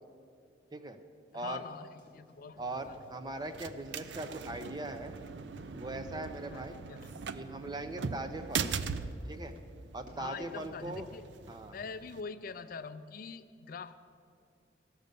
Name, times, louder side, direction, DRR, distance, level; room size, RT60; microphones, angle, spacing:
voice 1, 1.3-2.9 6.5-7.1 10.2-11.3 11.7-13.9, left 5 dB, 50° left, 12 dB, 0.4 m, -44 dB
sound 1, 1.3-11.0, equal, 50° right, 2.7 m, -61 dB
voice 2, 2.6-5.1 5.7-6.8 7.3-8.7 9.3-9.5 9.9-11.1 11.5-11.8, right 2 dB, 25° right, 8 dB, 0.6 m, -40 dB
sound 2, 2.6-12.2, right 5 dB, 75° right, 0.5 m, -41 dB
14.5 x 6.5 x 6.7 m, 2.3 s
head